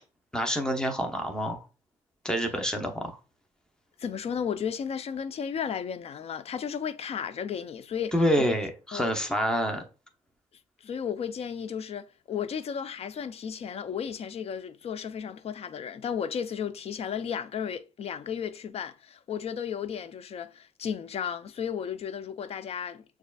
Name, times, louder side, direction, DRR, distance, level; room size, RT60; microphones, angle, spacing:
voice 1, 0.3-1.6 2.2-3.2 8.1-9.8, equal, 5° left, 0.8 m, -27 dB
voice 2, 4.0-8.6 8.9-9.1 10.8-23.0, left 7 dB, 55° left, 0.4 m, -34 dB
6.4 x 2.4 x 2.3 m
cardioid pair, 100°, 13 cm